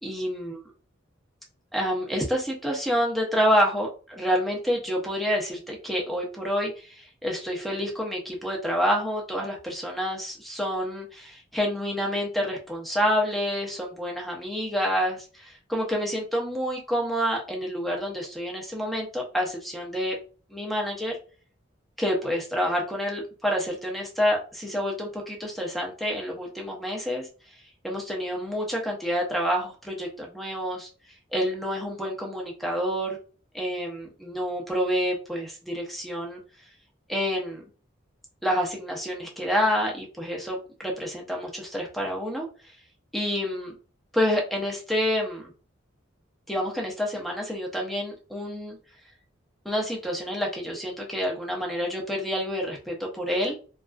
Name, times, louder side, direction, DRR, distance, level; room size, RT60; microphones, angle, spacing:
voice 1, 0.0-0.6 1.7-20.2 20.5-21.2 22.0-27.3 27.8-30.9 31.3-33.2 33.5-36.4 37.1-37.6 38.4-42.5 43.1-43.7 44.1-45.5 46.5-48.8 49.6-53.6, equal, ahead, -1 dB, 0.5 m, -28 dB
2.3 x 2.3 x 2.4 m, 0.37 s
head